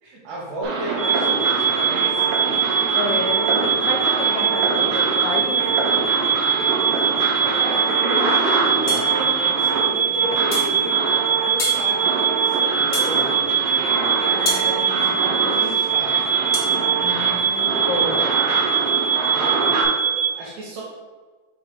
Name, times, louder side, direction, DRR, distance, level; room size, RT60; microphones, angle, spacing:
voice 1, 0.0-2.3 7.0-8.2 8.8-11.0 11.3-16.3 19.2-19.6 20.0-20.8, right 1 dB, 85° right, -5 dB, 3.2 m, -34 dB
sound 1, 0.6-19.8, right 3 dB, 65° right, 2.6 m, -25 dB
sound 2, 1.0-20.3, right 7 dB, 45° right, 1.9 m, -22 dB
voice 2, 3.0-3.5 3.8-5.6 17.0-18.3, left 3 dB, 80° left, 2 dB, 2.7 m, -29 dB
sound 3, 8.9-9.1 10.5-10.7 11.6-11.8 12.9-13.2 14.5-14.7 16.5-16.7, left 3 dB, 55° left, 2.1 m, -27 dB
7.1 x 3.1 x 5.3 m, 1.4 s
omnidirectional pair, 4.5 m